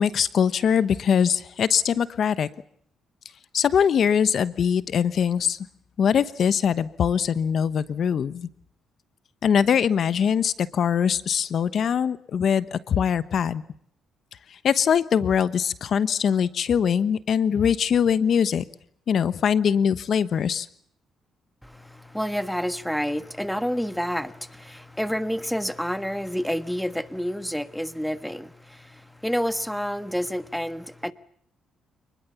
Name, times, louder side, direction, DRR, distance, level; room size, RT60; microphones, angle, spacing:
voice 1, 0.0-2.5 3.5-5.6 6.0-8.5 9.4-13.6 14.5-18.6 19.1-20.7, left 7 dB, 60° left, 1.1 m, -22 dB
voice 2, 21.6-31.1, equal, ahead, 1.3 m, -29 dB
27.0 x 21.0 x 7.1 m
cardioid pair, 90°, 0 cm